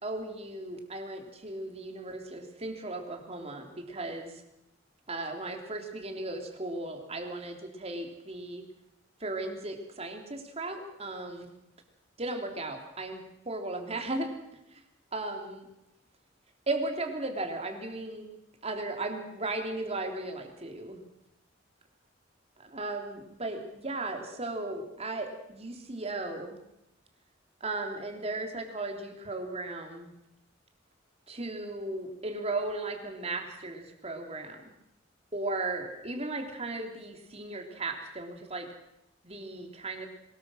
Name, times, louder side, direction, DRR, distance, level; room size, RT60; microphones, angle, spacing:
voice 1, 0.0-4.4 5.1-8.6 9.2-11.5 12.2-14.3 14.7-14.8 15.1-15.7 16.7-18.3 18.6-21.0 22.7-26.6 27.6-30.1 31.3-34.7 35.3-38.7 39.2-40.1, right 2 dB, 35° right, 4 dB, 3.4 m, -36 dB
23.0 x 20.5 x 6.4 m, 0.84 s
head